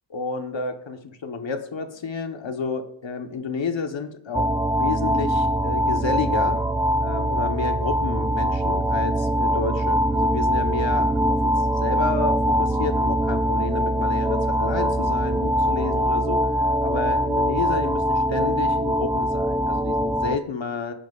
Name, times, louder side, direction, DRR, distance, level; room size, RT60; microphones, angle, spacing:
voice 1, 0.1-6.6 7.0-20.9, left 4 dB, 75° left, 6 dB, 1.2 m, -30 dB
sound 1, 4.3-20.4, equal, 10° right, 0.3 m, -22 dB
Organ, 5.9-16.7, left 7 dB, 20° left, 1.6 m, -45 dB
15.5 x 10.5 x 2.4 m, 0.68 s
wide cardioid pair, 75°, 45 cm